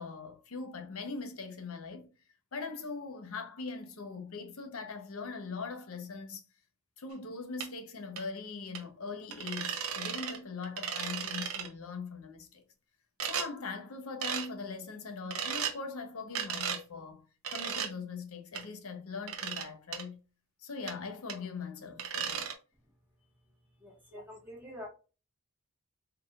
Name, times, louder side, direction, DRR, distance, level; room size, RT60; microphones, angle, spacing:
voice 1, 0.0-2.1 2.5-6.4 7.0-12.6 13.2-20.2 20.6-22.5 24.1-24.2, left 4 dB, 70° left, 0.9 m, -41 dB
sound 1, 7.6-7.7 8.2-8.3 8.7-8.8 9.3-10.4 10.6-11.7 13.2-13.5 14.2-14.5 15.3-15.8 16.3-16.8 17.4-17.9 18.5-18.6 19.3-19.7 19.9-20.0 20.9-21.0 21.3-21.4 22.0-22.5, right 7 dB, 70° right, 0.9 m, -35 dB
voice 2, 23.8-24.9, left 1 dB, 10° right, 1.5 m, -46 dB
4.5 x 3.5 x 2.4 m
head